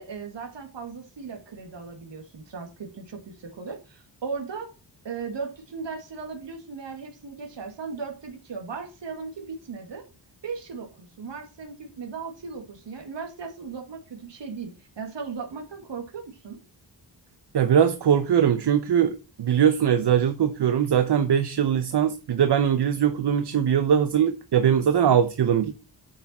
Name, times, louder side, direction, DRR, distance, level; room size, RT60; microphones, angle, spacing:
voice 1, 0.0-4.7 5.0-10.0 10.4-16.6, right 5 dB, 90° right, 2.0 m, -37 dB
voice 2, 17.5-25.8, right 8 dB, 70° right, 0.9 m, -21 dB
9.6 x 6.7 x 4.3 m
wide cardioid pair, 180°, 42 cm